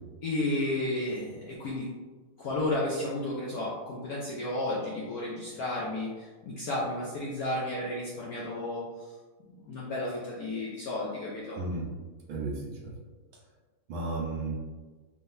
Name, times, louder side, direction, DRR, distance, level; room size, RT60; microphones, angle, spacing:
voice 1, 0.2-1.9 2.4-9.2 9.6-11.6, left 1 dB, 65° left, -5 dB, 0.9 m, -32 dB
voice 2, 12.3-12.9 13.9-14.5, right 2 dB, 75° right, -2 dB, 1.6 m, -33 dB
4.6 x 3.6 x 2.6 m, 1.3 s
omnidirectional pair, 2.3 m